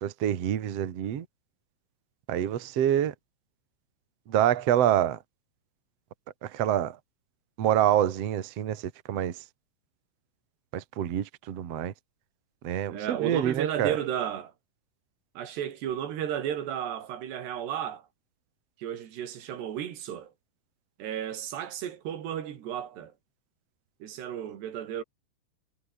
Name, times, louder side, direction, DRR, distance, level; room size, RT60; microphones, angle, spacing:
voice 1, 0.0-1.2 2.3-3.1 4.3-5.2 6.4-6.9 7.6-8.8 9.1-9.3 10.7-11.9 12.6-14.0, right 11 dB, 85° right, 1.4 m, -26 dB
voice 2, 12.9-14.5 15.4-18.0 18.8-20.3 21.0-23.1 24.0-25.0, right 10 dB, 60° right, 4.3 m, -33 dB
omnidirectional pair, 5.8 m